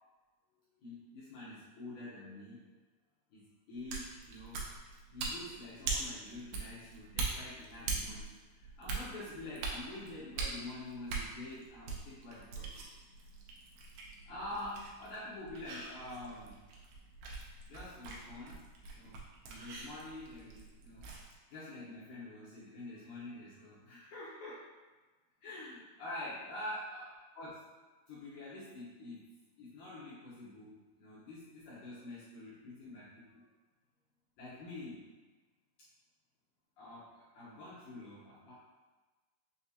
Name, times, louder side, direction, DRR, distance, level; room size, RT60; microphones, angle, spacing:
voice 1, 0.8-2.6 3.3-4.6 5.1-12.8 14.3-16.6 17.7-18.6 18.9-21.1 21.5-24.6 25.4-27.1 27.3-27.6 28.1-29.3 29.6-33.4 34.4-35.1 36.8-38.5, left 1 dB, 80° left, -9 dB, 1.7 m, -47 dB
sound 1, 3.7-21.3, right 4 dB, 80° right, 2.4 m, -43 dB
6.7 x 2.4 x 2.7 m, 1.3 s
omnidirectional pair, 4.7 m